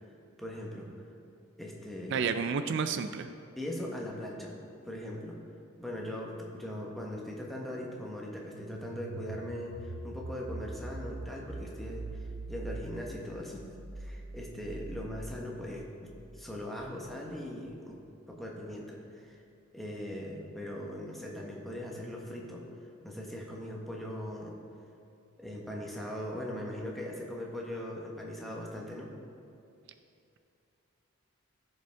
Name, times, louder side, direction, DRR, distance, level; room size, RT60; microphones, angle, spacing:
voice 1, 0.4-0.9 1.6-2.4 3.6-4.6 4.8-5.4 5.8-18.0 18.3-19.4 19.7-22.6 23.0-24.6 25.4-29.1, left 1 dB, ahead, -2 dB, 1.0 m, -40 dB
voice 2, 2.1-3.3, right 6 dB, 55° right, 9 dB, 0.3 m, -30 dB
sound 1, 8.5-17.2, right 2 dB, 90° right, 0.6 m, -43 dB
15.0 x 5.3 x 3.4 m, 2.6 s
head